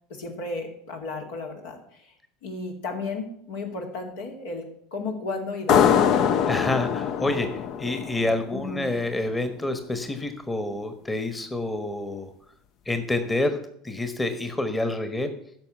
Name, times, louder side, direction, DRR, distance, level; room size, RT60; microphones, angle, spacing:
voice 1, 0.1-2.1 2.4-4.6 4.9-6.3 8.5-8.9, left 3 dB, 75° left, 2 dB, 2.6 m, -34 dB
sound 1, 5.7-9.0, left 8 dB, 55° left, 0.8 m, -23 dB
voice 2, 6.5-7.5 7.8-12.3 12.9-13.6 13.8-15.3, left 2 dB, 15° left, 8 dB, 1.3 m, -27 dB
10.5 x 6.6 x 7.7 m, 0.69 s
hypercardioid pair, 80°, 0 cm